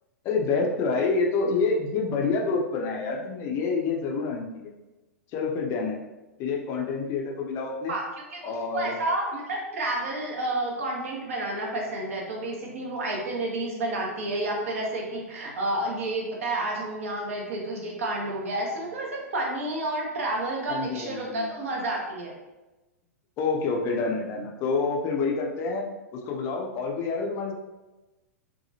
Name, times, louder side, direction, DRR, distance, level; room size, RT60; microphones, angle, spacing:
voice 1, 0.2-4.7 5.3-6.0 6.4-7.9 8.4-8.9 20.7-21.6 23.4-25.8 26.1-27.5, left 4 dB, 30° left, 0 dB, 0.4 m, -27 dB
voice 2, 8.3-22.3, right 2 dB, 60° right, -1 dB, 0.7 m, -30 dB
2.8 x 2.2 x 2.7 m, 1.1 s
figure-of-eight pair, 100°, 8 cm